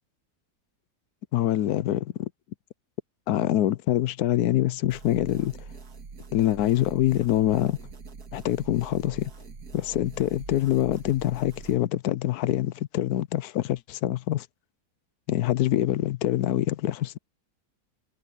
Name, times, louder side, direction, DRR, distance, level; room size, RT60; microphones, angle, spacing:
voice 1, 1.3-2.3 3.3-5.5 6.3-7.8 8.3-9.3 9.7-14.5 15.3-17.2, left 13 dB, 85° left, 1.2 m, -25 dB
sound 1, 4.9-11.8, right 4 dB, 80° right, 2.5 m, -43 dB
omnidirectional pair, 1.6 m